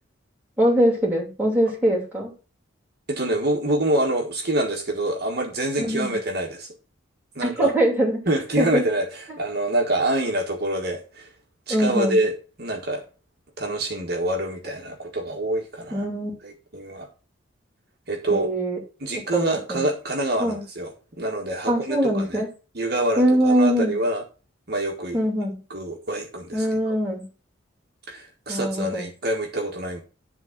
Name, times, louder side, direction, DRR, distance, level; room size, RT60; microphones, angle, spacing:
voice 1, 0.6-2.3 5.8-6.1 7.4-8.2 8.6-8.8 11.7-12.2 15.9-16.3 18.3-18.8 19.3-19.8 20.4-20.6 21.7-22.5 23.2-23.9 25.1-25.6 26.5-27.2 28.5-29.1, equal, 10° right, -3 dB, 3.0 m, -22 dB
voice 2, 3.1-6.7 7.3-7.7 8.3-11.3 11.7-13.0 13.6-16.0 16.4-17.1 18.1-18.5 19.0-22.4 22.7-24.2 24.7-25.2 25.7-26.9 28.1-30.0, right 1 dB, 50° right, 1 dB, 1.6 m, -26 dB
11.0 x 3.8 x 5.9 m, 0.34 s
head